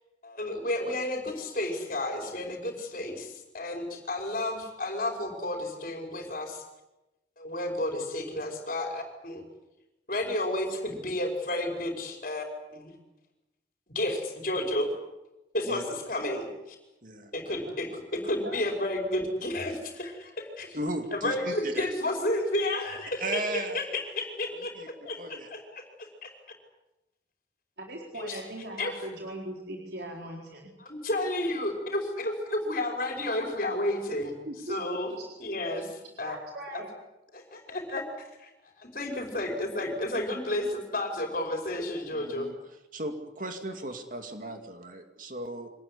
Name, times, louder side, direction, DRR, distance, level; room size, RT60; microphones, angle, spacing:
voice 1, 0.2-6.6 7.4-9.4 10.1-12.4 12.7-12.9 13.9-14.9 15.5-16.8 17.3-20.8 21.1-24.7 25.1-26.3 28.1-28.4 28.8-28.9 30.8-34.3 34.7-35.1 35.4-36.4 36.7-36.8 37.3-38.0 38.4-42.5, left 1 dB, 45° left, 2 dB, 5.2 m, -32 dB
voice 2, 20.7-21.9 23.2-23.8 24.8-24.9 25.2-25.5 42.1-42.5 42.9-45.7, right 1 dB, 50° right, 6 dB, 2.4 m, -36 dB
voice 3, 27.8-30.7 34.4-34.8 35.2-35.3 36.2-36.9, right 1 dB, 65° right, 0 dB, 4.4 m, -39 dB
26.0 x 20.0 x 9.8 m, 0.98 s
head